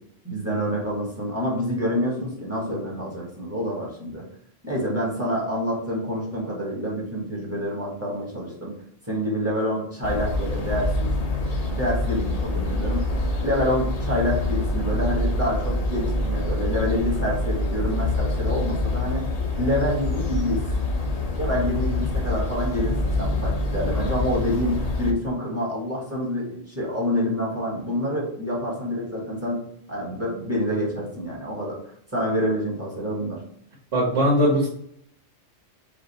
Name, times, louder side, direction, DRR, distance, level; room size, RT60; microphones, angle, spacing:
voice 1, 0.2-4.2 4.6-8.7 9.1-11.2 11.7-13.1 13.4-19.2 19.6-20.6 21.3-29.6 29.9-31.8 32.1-33.4, equal, 10° right, -4 dB, 1.5 m, -27 dB
sound 1, 10.0-25.1, left 2 dB, 40° left, 0.7 m, -26 dB
voice 2, 33.9-34.7, equal, 70° right, -7 dB, 1.7 m, -19 dB
5.1 x 2.5 x 4.1 m, 0.70 s
omnidirectional pair, 1.3 m